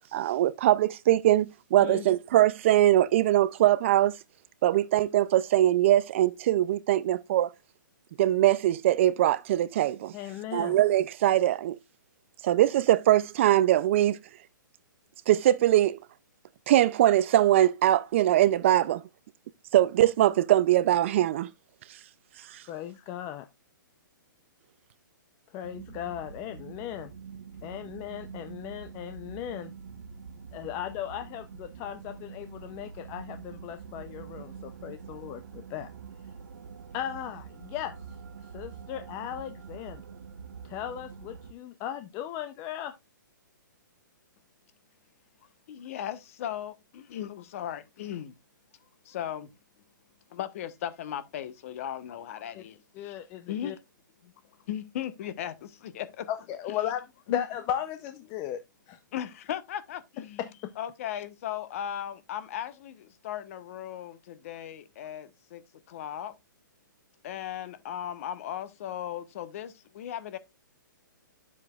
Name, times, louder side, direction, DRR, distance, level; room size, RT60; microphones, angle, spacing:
voice 1, 0.1-4.2 4.6-7.5 8.2-10.1 10.5-11.8 12.4-14.2 15.3-16.0 16.7-19.0 19.7-21.5 22.5-22.6, right 13 dB, 35° right, 0.4 m, -22 dB
voice 2, 10.1-10.8 22.7-23.5 25.5-27.1 27.6-29.7 30.5-35.9 36.9-37.9 38.5-40.0 40.6-42.9 52.5-52.6 52.9-53.7 56.3-58.6 58.9-59.0 60.4-60.7, left 11 dB, 20° left, 0.5 m, -36 dB
sound 1, 25.6-41.5, right 6 dB, 70° right, 0.9 m, -45 dB
voice 3, 45.7-48.3 49.0-49.5 50.3-53.2 53.5-53.7 54.2-54.3 54.7-56.3 57.3-57.4 59.1-60.4 60.8-65.6 65.9-66.3 67.2-70.4, left 10 dB, 45° left, 1.0 m, -37 dB
9.8 x 7.4 x 2.3 m
hypercardioid pair, 155°, 11 cm